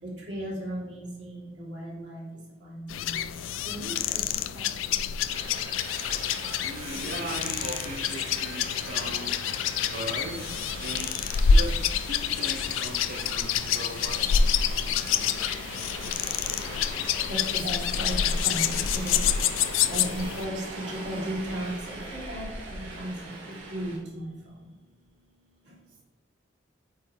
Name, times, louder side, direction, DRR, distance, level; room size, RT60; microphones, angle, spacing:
voice 1, 0.0-2.2 2.6-3.2 3.6-4.2 4.5-4.9 16.9-24.3 24.6-24.7 25.7-25.8, right 1 dB, 65° right, -4 dB, 2.2 m, -36 dB
sound 1, 2.9-20.5, left 7 dB, 80° left, 0.3 m, -27 dB
Subway metro underground, 5.3-24.0, right 2 dB, 90° right, 1.8 m, -40 dB
voice 2, 6.6-9.4 9.9-10.5 10.8-14.3, right 1 dB, 45° right, 0 dB, 0.6 m, -38 dB
8.6 x 4.6 x 2.8 m, 1.1 s
head